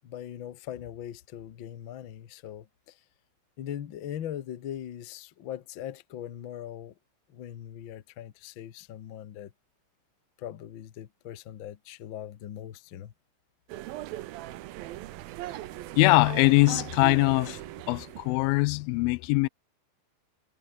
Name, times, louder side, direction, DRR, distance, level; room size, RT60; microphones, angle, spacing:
voice 1, 0.0-3.0 3.6-6.9 7.3-9.5 10.4-13.1, left 10 dB, 65° left, 1.2 m, -40 dB
sound 1, 13.7-18.4, right 15 dB, 85° right, 2.8 m, -39 dB
voice 2, 16.0-17.6 17.9-19.5, left 22 dB, 85° left, 2.3 m, -22 dB
omnidirectional pair, 4.1 m